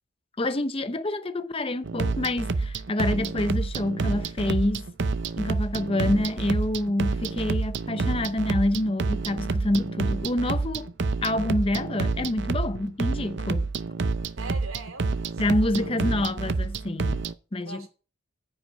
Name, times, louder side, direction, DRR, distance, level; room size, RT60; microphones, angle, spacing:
voice 1, 0.4-4.9 5.4-10.9 11.2-13.7 15.4-17.9, left 1 dB, 25° left, 0.7 m, -27 dB
sound 1, 1.8-17.3, right 3 dB, 55° right, 0.6 m, -28 dB
voice 2, 14.4-15.9 17.6-17.9, right 3 dB, 80° right, 2.9 m, -42 dB
9.9 x 5.6 x 8.4 m
head